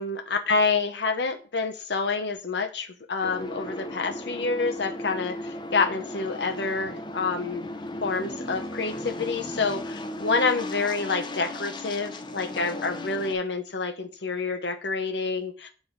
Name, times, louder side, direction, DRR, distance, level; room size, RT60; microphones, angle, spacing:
voice 1, 0.0-5.4 5.7-7.7 8.0-15.7, left 4 dB, 75° left, 4 dB, 0.9 m, -28 dB
sound 1, 3.2-13.3, left 1 dB, 25° left, 0.7 m, -36 dB
8.0 x 3.7 x 3.9 m, 0.37 s
head